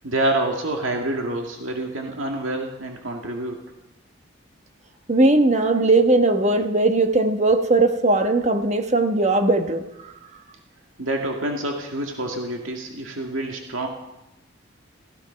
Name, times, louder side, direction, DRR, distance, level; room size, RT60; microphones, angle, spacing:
voice 1, 0.0-3.6 11.0-13.9, right 1 dB, 90° right, 2 dB, 2.1 m, -27 dB
voice 2, 5.1-9.8, right 2 dB, 35° right, 7 dB, 1.2 m, -19 dB
16.0 x 15.5 x 5.7 m, 0.94 s
head